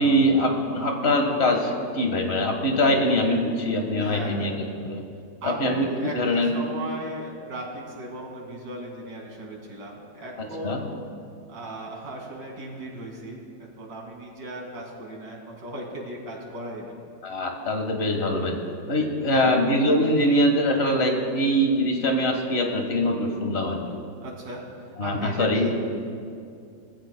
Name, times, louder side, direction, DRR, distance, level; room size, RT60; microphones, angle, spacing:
voice 1, 0.0-5.0 5.4-6.6 10.6-10.8 17.2-18.6 18.9-23.8 25.0-25.7, equal, 40° left, 3 dB, 1.6 m, -23 dB
voice 2, 4.0-4.5 5.4-10.9 11.5-17.0 19.3-19.5 24.2-25.7, right 1 dB, 65° right, -2 dB, 2.9 m, -37 dB
20.5 x 14.5 x 2.2 m, 2.4 s
omnidirectional pair, 1.9 m